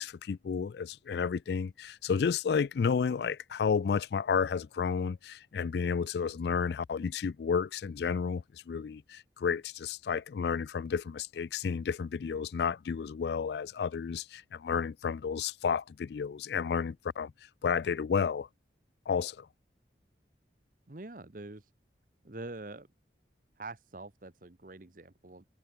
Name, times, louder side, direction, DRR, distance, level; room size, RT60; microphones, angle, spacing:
voice 1, 0.0-17.3 17.6-18.5 19.1-19.5, left 6 dB, 65° left, 0.3 m, -31 dB
voice 2, 20.9-21.7 22.2-22.9 23.6-25.4, right 2 dB, 50° right, 1.0 m, -45 dB
head